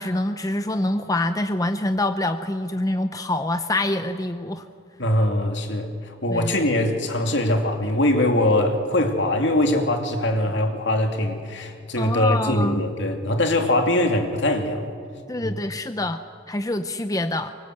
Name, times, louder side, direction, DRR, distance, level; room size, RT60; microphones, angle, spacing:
voice 1, 0.0-4.6 6.3-6.5 12.0-12.8 15.3-17.5, left 1 dB, 20° left, 9 dB, 0.6 m, -25 dB
voice 2, 5.0-14.8 15.4-15.6, left 1 dB, 65° left, 4 dB, 2.6 m, -22 dB
24.0 x 23.0 x 8.0 m, 2.4 s
head